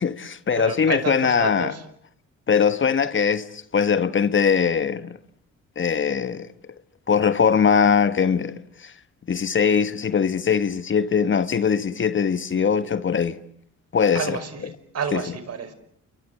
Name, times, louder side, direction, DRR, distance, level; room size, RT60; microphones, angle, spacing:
voice 1, 0.0-1.7 2.5-5.2 5.8-6.5 7.1-8.5 8.8-8.9 9.3-13.4 13.9-14.4 15.1-15.2, left 6 dB, 40° left, 1.5 m, -21 dB
voice 2, 0.5-1.9 14.1-15.7, right 6 dB, 55° right, 5.2 m, -30 dB
30.0 x 23.5 x 8.4 m
cardioid pair, 90°, 30 cm